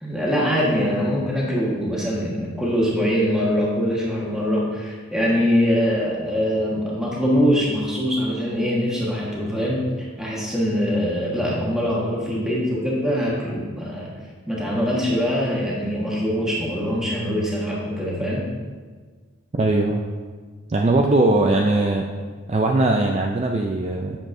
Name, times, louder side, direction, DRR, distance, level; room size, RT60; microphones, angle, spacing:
voice 1, 0.0-9.9 10.2-14.1 14.5-18.4, equal, 5° right, -5 dB, 1.3 m, -23 dB
voice 2, 19.6-20.0 20.7-22.0 22.5-24.2, right 2 dB, 30° right, 1 dB, 0.3 m, -20 dB
8.7 x 6.8 x 2.6 m, 1.5 s
head